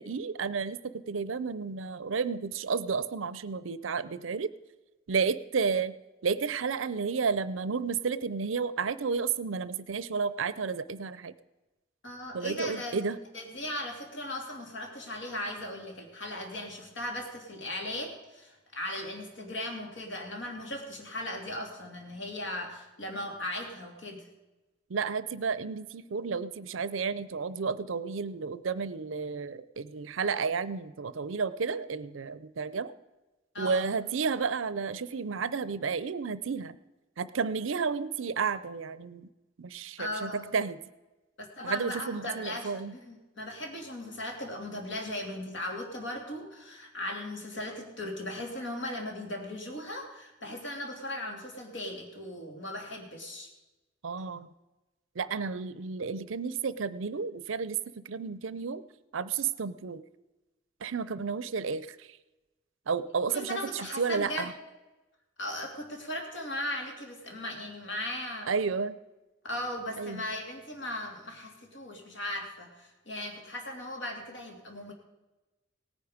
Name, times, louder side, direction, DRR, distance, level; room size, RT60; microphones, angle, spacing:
voice 1, 0.0-4.5 5.1-5.9 6.2-11.3 12.3-13.2 24.9-32.9 33.6-36.8 37.2-39.3 39.6-40.8 41.6-43.0 54.0-54.5 55.2-58.8 59.1-60.0 60.8-62.2 62.9-64.5 68.5-69.0 70.0-70.2, right 5 dB, 75° right, 16 dB, 0.6 m, -32 dB
voice 2, 12.0-13.0 13.3-24.2 33.5-33.9 40.0-40.5 41.4-53.5 63.3-64.5 65.4-68.5 69.4-74.9, left 1 dB, 65° left, 2 dB, 2.8 m, -38 dB
17.5 x 9.5 x 5.1 m, 1.1 s
head